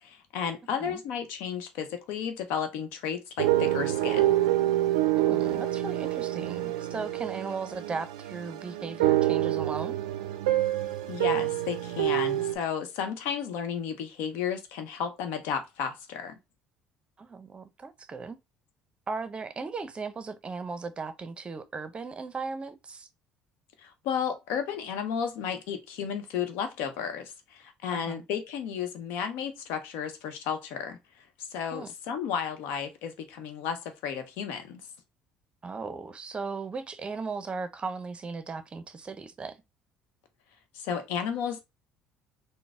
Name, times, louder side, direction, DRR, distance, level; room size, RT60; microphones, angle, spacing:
voice 1, 0.0-4.4 11.1-16.3 23.8-31.0 31.4-34.8 40.7-41.6, left 7 dB, 75° left, 0.7 m, -33 dB
sound 1, 3.4-12.5, right 14 dB, 90° right, 0.3 m, -27 dB
voice 2, 5.2-10.0 17.2-18.4 19.1-23.1 27.9-28.2 31.7-31.9 35.6-39.6, right 4 dB, 30° right, 0.6 m, -37 dB
3.9 x 2.0 x 3.5 m
hypercardioid pair, 65°, 3 cm